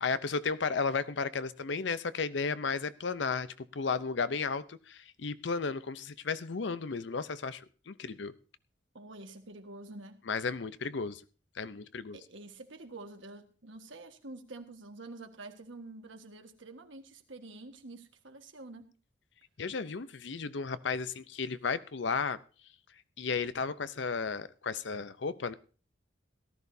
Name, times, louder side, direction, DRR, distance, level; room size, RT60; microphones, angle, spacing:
voice 1, 0.0-3.5 3.7-8.3 10.3-11.2 11.6-12.2 19.6-22.4 23.2-25.5, left 5 dB, 70° left, 14 dB, 0.6 m, -34 dB
voice 2, 8.9-10.2 12.1-18.9, right 2 dB, 80° right, 6 dB, 1.5 m, -48 dB
18.0 x 13.0 x 2.7 m, 0.37 s
head